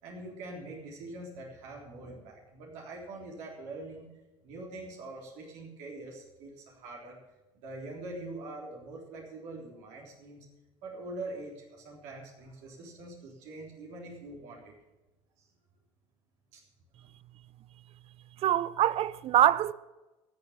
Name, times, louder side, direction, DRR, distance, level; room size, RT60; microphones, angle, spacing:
voice 1, 0.0-4.1 4.4-7.2 7.6-10.5 10.8-14.7 15.4-15.5 16.5-16.6, right 2 dB, 70° right, 3.6 m, -44 dB
voice 2, 18.4-19.7, right 12 dB, 50° right, 0.6 m, -24 dB
13.5 x 6.7 x 9.8 m
supercardioid pair, 80°, 13 cm